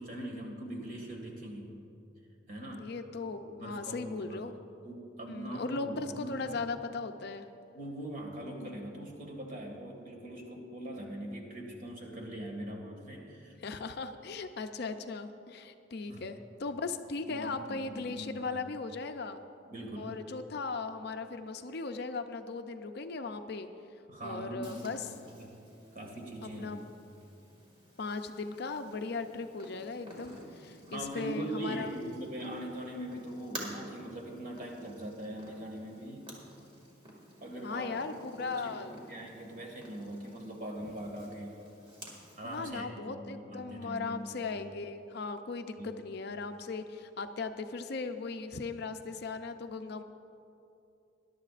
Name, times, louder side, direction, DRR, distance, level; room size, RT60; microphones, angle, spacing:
voice 1, 0.0-1.7 2.5-2.9 3.4-4.4 4.8-6.6 7.7-13.5 16.1-16.2 17.3-18.6 19.7-20.2 24.1-25.6 25.9-26.7 30.9-36.3 37.4-41.6 42.4-44.2 45.8-45.9, right 1 dB, 45° right, 0 dB, 1.9 m, -42 dB
voice 2, 2.8-4.6 5.3-7.5 8.6-8.7 13.6-19.4 20.0-23.7 24.2-25.1 26.4-26.8 28.0-31.9 37.6-38.9 42.4-50.0, left 4 dB, 55° left, 8 dB, 0.5 m, -38 dB
Purr, 24.6-42.7, equal, 25° right, 2.1 m, -52 dB
21.0 x 11.0 x 2.5 m, 2.7 s
head